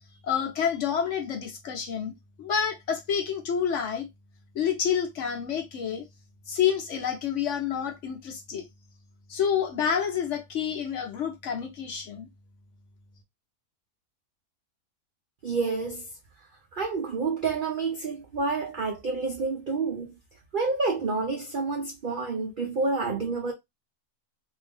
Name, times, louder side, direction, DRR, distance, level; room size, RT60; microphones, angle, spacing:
voice 1, 0.2-2.1 2.4-4.1 4.5-6.0 6.5-8.6 9.3-12.3, left 8 dB, 60° left, 0.9 m, -28 dB
voice 2, 15.4-16.1 16.7-20.1 20.5-23.5, right 4 dB, 65° right, 0.5 m, -29 dB
2.6 x 2.6 x 3.4 m
omnidirectional pair, 1.6 m